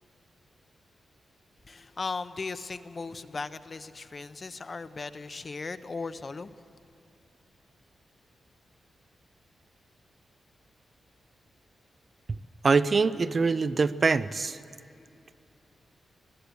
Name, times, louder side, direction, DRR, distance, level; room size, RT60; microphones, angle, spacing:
voice 1, 1.7-6.5, left 4 dB, 35° left, 12 dB, 0.6 m, -37 dB
voice 2, 12.6-14.6, right 4 dB, 40° right, 14 dB, 0.4 m, -24 dB
20.0 x 16.0 x 8.2 m, 2.6 s
wide cardioid pair, 125°, 0 cm